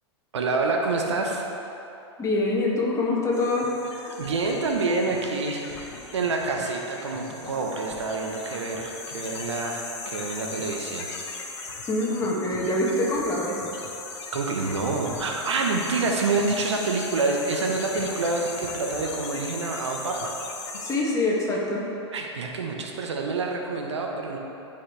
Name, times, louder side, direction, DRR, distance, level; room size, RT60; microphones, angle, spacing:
voice 1, 0.3-1.4 4.2-11.1 14.3-20.4 22.1-24.4, right 3 dB, 80° right, 1 dB, 1.1 m, -27 dB
voice 2, 2.2-3.7 11.9-13.6 20.8-21.9, left 2 dB, 20° left, -4 dB, 2.1 m, -25 dB
sound 1, 3.3-21.0, left 4 dB, 70° left, 1.5 m, -38 dB
14.0 x 5.5 x 3.4 m, 2.9 s
hypercardioid pair, 100°, 15 cm